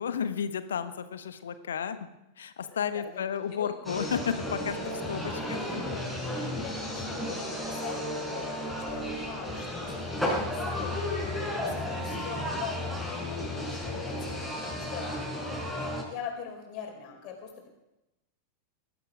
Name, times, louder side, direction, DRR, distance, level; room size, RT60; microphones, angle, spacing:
voice 1, 0.0-2.1 2.4-4.8 5.1-5.6 6.3-6.5, left 7 dB, 65° left, 12 dB, 1.1 m, -32 dB
voice 2, 2.7-3.7 5.3-15.6 16.0-17.7, left 7 dB, 45° left, 2 dB, 4.9 m, -43 dB
sound 1, 3.8-16.0, left 1 dB, ahead, 5.0 m, -33 dB
19.5 x 13.5 x 5.0 m, 0.92 s
figure-of-eight pair, 90°, 0 cm